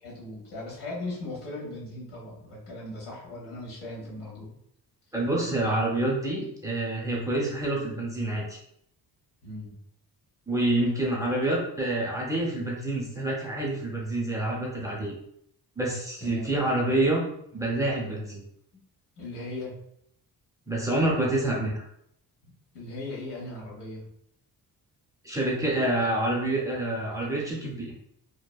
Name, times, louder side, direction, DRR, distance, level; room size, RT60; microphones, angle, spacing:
voice 1, 0.0-4.5 9.4-9.8 16.2-16.6 19.2-19.7 22.7-24.1, left 2 dB, 85° left, -4 dB, 1.2 m, -38 dB
voice 2, 5.1-8.6 10.5-15.1 15.8-17.2 17.5-18.4 20.7-21.8 25.2-27.9, right 1 dB, 10° right, -4 dB, 0.5 m, -27 dB
2.8 x 2.1 x 2.2 m, 0.72 s
cardioid pair, 125°, 40 cm